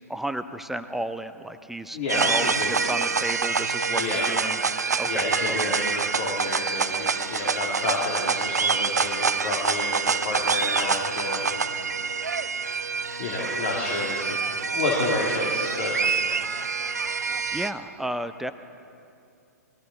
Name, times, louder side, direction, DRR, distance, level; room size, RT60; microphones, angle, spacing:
voice 1, 0.1-4.6 5.0-5.8 17.5-18.5, right 1 dB, 5° right, 10 dB, 0.4 m, -33 dB
voice 2, 1.9-2.7 3.9-4.3 5.0-12.1 13.2-14.4 14.7-15.9, left 2 dB, 45° left, -4 dB, 2.7 m, -30 dB
sound 1, 2.1-17.7, right 5 dB, 75° right, 0.6 m, -26 dB
21.0 x 14.5 x 4.3 m, 2.5 s
figure-of-eight pair, 115°, 9 cm